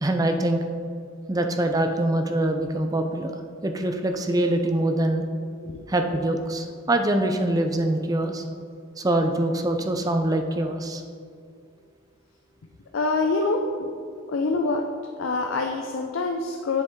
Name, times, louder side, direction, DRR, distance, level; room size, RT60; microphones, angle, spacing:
voice 1, 0.0-0.6 1.3-3.4 3.6-5.2 5.9-8.4 9.0-11.0, right 1 dB, 20° right, 6 dB, 0.5 m, -24 dB
voice 2, 12.9-13.9 14.3-14.8 15.2-16.8, left 3 dB, 80° left, 3 dB, 0.5 m, -25 dB
7.9 x 6.9 x 3.7 m, 2.2 s
head